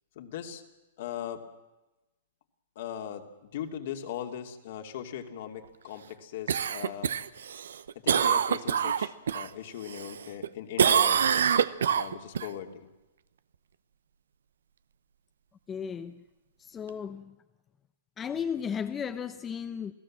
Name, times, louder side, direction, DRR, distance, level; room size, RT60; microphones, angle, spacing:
voice 1, 0.1-0.6 1.0-1.4 2.7-7.1 7.9-11.4 11.9-12.9, left 10 dB, 60° left, 2.8 m, -39 dB
Cough, 6.5-9.5 9.9-10.5 10.8-12.5 16.9-17.0, right 8 dB, 85° right, 1.0 m, -25 dB
voice 2, 15.7-16.2 16.6-17.4 18.2-19.9, left 7 dB, 20° left, 0.8 m, -35 dB
28.0 x 17.0 x 7.6 m
hypercardioid pair, 140°, 0 cm